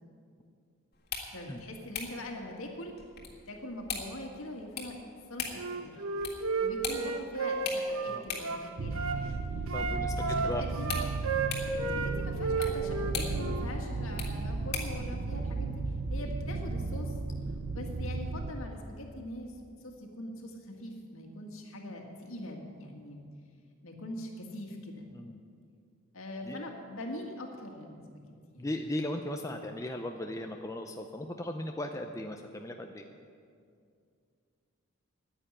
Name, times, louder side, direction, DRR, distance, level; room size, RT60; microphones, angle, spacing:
sound 1, 0.9-15.0, left 6 dB, 45° left, 1.8 m, -43 dB
voice 1, 1.3-3.0 3.5-5.0 5.3-6.0 6.6-9.4 10.2-11.0 11.8-15.8 16.1-17.1 17.7-23.2 23.8-25.1 26.1-28.0 28.5-28.7, left 1 dB, 70° left, 2 dB, 1.9 m, -42 dB
Wind instrument woodwind instrument, 5.5-9.2 9.7-12.1 12.4-13.7, right 4 dB, 70° right, 1.1 m, -33 dB
sound 2, 8.8-18.5, right 3 dB, 50° right, 0.6 m, -35 dB
voice 2, 9.7-10.1 10.4-10.6 25.1-25.4 26.4-26.6 28.6-33.0, left 1 dB, 15° left, 4 dB, 0.5 m, -37 dB
10.0 x 9.1 x 9.8 m, 2.3 s
head